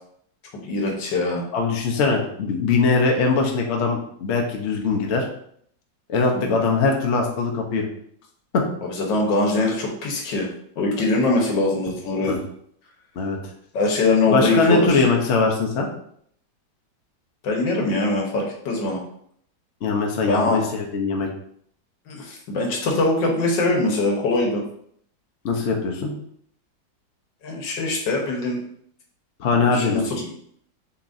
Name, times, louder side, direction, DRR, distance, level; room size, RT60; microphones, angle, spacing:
voice 1, 0.6-1.4 6.3-6.6 8.8-10.5 10.8-12.4 13.7-15.0 17.4-19.0 20.2-20.6 22.1-24.6 27.4-28.6 29.7-30.2, left 2 dB, 85° left, 0 dB, 1.7 m, -22 dB
voice 2, 1.5-5.3 6.1-7.8 8.5-8.6 12.3-12.4 13.2-13.4 14.3-15.9 19.8-21.3 25.4-26.1 29.4-30.1, left 4 dB, 55° left, 1 dB, 0.8 m, -21 dB
7.0 x 2.9 x 2.6 m, 0.66 s
omnidirectional pair, 1.9 m